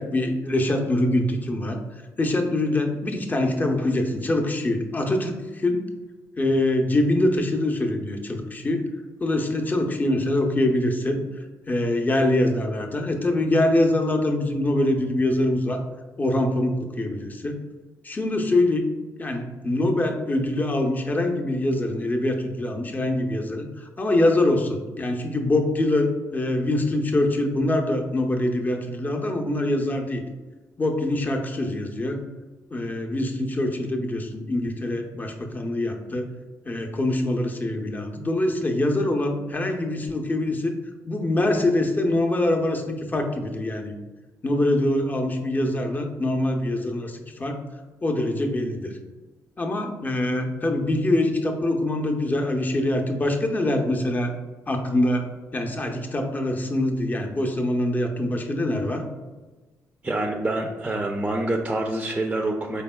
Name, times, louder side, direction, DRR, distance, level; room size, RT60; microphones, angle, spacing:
voice 1, 0.0-1.8 2.2-5.8 6.4-8.8 9.2-11.2 11.7-15.8 16.2-17.6 18.0-18.9 19.2-23.7 24.0-30.2 30.8-32.2 32.7-36.3 36.7-40.8 41.1-43.9 44.4-47.6 48.0-49.0 49.6-54.3 54.7-59.0, left 1 dB, 25° left, 3 dB, 0.6 m, -24 dB
voice 2, 60.0-62.8, right 2 dB, 20° right, 2 dB, 0.4 m, -26 dB
4.2 x 3.4 x 2.2 m, 1.2 s
cardioid pair, 70°, 6 cm